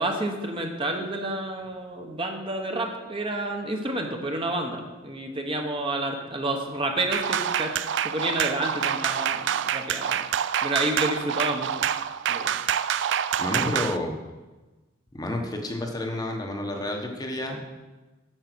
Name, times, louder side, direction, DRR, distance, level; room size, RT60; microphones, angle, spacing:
voice 1, 0.0-7.7 8.0-10.2 10.6-11.8 12.3-12.5, right 2 dB, 25° right, 3 dB, 1.0 m, -29 dB
sound 1, 7.1-14.0, right 9 dB, 65° right, 0.4 m, -27 dB
voice 2, 13.4-14.1 15.1-17.7, left 1 dB, 20° left, 2 dB, 1.0 m, -30 dB
8.9 x 7.0 x 6.1 m, 1.2 s
head